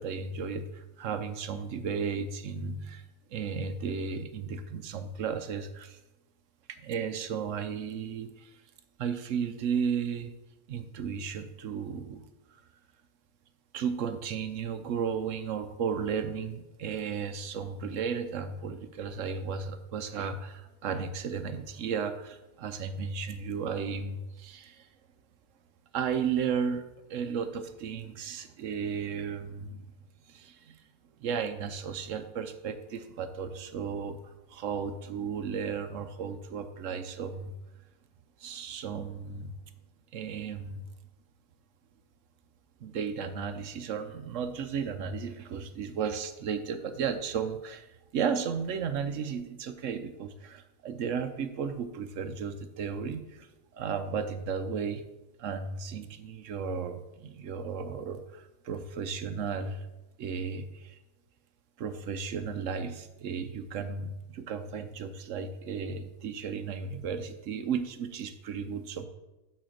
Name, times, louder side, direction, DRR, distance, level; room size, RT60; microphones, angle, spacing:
voice 1, 0.0-3.0 3.3-6.0 6.7-8.6 9.0-10.3 10.7-12.6 13.7-24.9 25.9-29.9 30.3-30.8 31.2-37.5 38.4-39.5 40.1-40.8 42.8-55.0 55.4-59.9 60.2-61.0 61.8-69.1, right 6 dB, 60° right, 9 dB, 0.9 m, -34 dB
8.8 x 4.2 x 6.5 m, 1.0 s
omnidirectional pair, 1.6 m